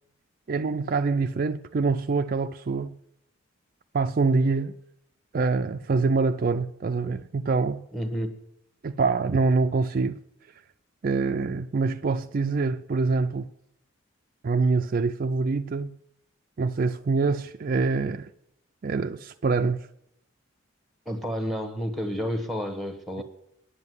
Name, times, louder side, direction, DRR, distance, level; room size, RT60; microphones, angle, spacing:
voice 1, 0.5-3.0 3.9-4.7 5.3-7.9 8.8-10.2 11.0-13.5 14.4-16.0 16.6-18.3 18.8-19.9, right 4 dB, 40° right, 0.4 m, -25 dB
voice 2, 7.9-8.4 21.1-23.2, equal, ahead, 1.1 m, -30 dB
10.0 x 7.6 x 9.4 m
head